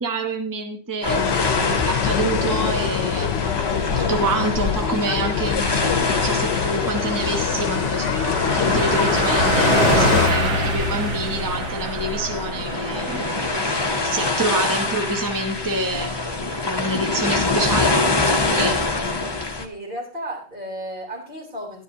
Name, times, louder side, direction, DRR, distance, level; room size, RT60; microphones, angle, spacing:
voice 1, 0.0-3.3 3.6-3.7 4.0-5.7 6.0-13.4 14.0-16.2 16.6-18.8, right 2 dB, 20° right, 4 dB, 0.9 m, -27 dB
sound 1, 1.0-19.7, left 3 dB, 25° left, 0.7 m, -26 dB
sound 2, 1.1-10.3, left 7 dB, 70° left, 1.0 m, -24 dB
Car passing by, 3.1-3.8 4.1-4.2 4.5-18.8, right 2 dB, 85° right, 1.5 m, -28 dB
voice 2, 19.5-21.8, right 1 dB, 45° right, -3 dB, 3.7 m, -33 dB
11.5 x 10.0 x 2.8 m, 0.41 s
omnidirectional pair, 1.2 m